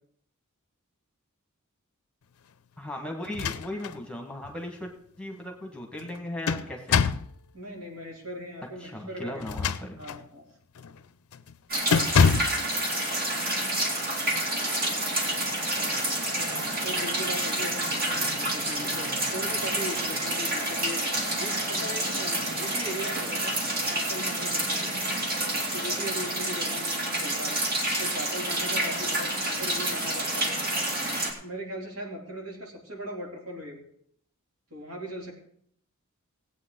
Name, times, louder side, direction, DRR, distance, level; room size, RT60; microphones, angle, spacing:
voice 1, 2.8-7.2 8.8-10.0, left 1 dB, 5° left, 1 dB, 1.5 m, -37 dB
sound 1, 3.2-4.0 4.4-4.5 6.0-7.3 9.4-10.3 10.8-11.0 11.3-11.5 11.9-12.6, left 5 dB, 85° left, 0.5 m, -25 dB
voice 2, 7.5-9.6 10.0-10.5 16.3-21.0 21.4-23.6 23.9-25.0 25.5-27.6 28.0-30.6 31.0-33.9 34.7-35.3, equal, 70° right, -1 dB, 3.2 m, -39 dB
sound 2, 11.7-31.3, right 1 dB, 45° right, 2.4 m, -28 dB
18.5 x 8.6 x 3.9 m, 0.66 s
head